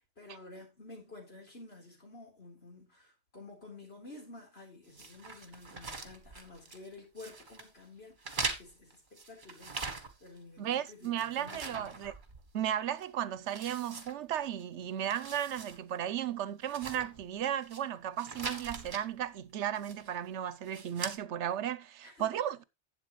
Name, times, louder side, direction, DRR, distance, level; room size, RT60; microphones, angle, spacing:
voice 1, 0.2-9.8 10.2-12.0 22.0-22.3, left 2 dB, 65° left, 4.2 m, -51 dB
sound 1, 4.9-6.9 7.2-7.7 8.2-10.4 10.7-12.6 13.0-13.1 13.5-14.6 15.0-15.8 16.1-16.2 16.6-17.8 18.2-19.0 19.7-20.2 20.6-21.2, right 3 dB, 45° right, 1.7 m, -42 dB
voice 2, 10.6-12.1 12.5-22.6, right 10 dB, 85° right, 1.0 m, -35 dB
11.5 x 8.1 x 3.1 m
omnidirectional pair, 1.1 m